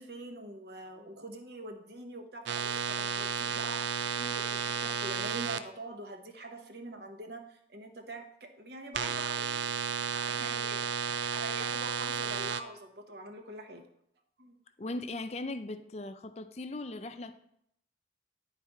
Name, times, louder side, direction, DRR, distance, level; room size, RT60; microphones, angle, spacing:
voice 1, 0.0-9.6 10.1-13.9 14.4-14.6, right 2 dB, 60° right, 4 dB, 1.0 m, -44 dB
sound 1, 2.4-5.6 8.9-12.6, right 7 dB, 80° right, 0.5 m, -33 dB
voice 2, 14.8-17.4, left 2 dB, 35° left, 9 dB, 0.5 m, -38 dB
10.0 x 4.1 x 4.6 m, 0.71 s
head